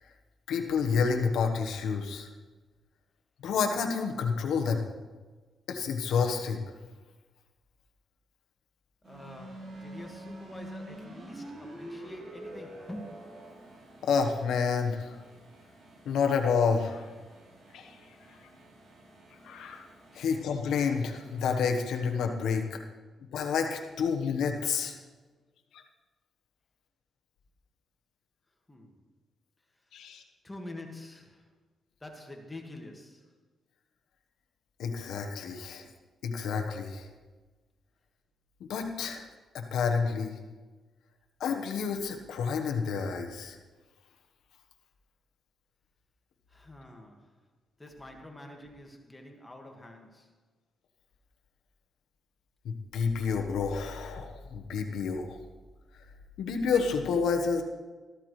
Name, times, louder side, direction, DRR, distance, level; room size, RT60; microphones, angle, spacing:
voice 1, 0.5-2.3 3.4-4.9 5.7-6.6 14.0-15.2 16.0-17.1 17.7-18.0 19.4-19.9 20.1-22.8 23.3-25.0 25.7-25.8 29.9-30.2 34.8-35.8 36.2-37.1 38.6-39.3 39.5-40.4 41.4-43.6 52.6-55.4 56.4-57.6, left 5 dB, 85° left, 4 dB, 1.2 m, -29 dB
voice 2, 9.0-13.2 17.4-17.6 20.1-20.3 22.6-22.7 28.7-29.0 30.4-31.5 32.0-33.3 46.5-47.3 47.8-50.3, left 1 dB, 15° left, 2 dB, 1.8 m, -46 dB
sound 1, 9.0-22.1, right 1 dB, 65° right, 3.3 m, -48 dB
14.0 x 13.0 x 3.2 m, 1.3 s
cardioid pair, 90°, 0 cm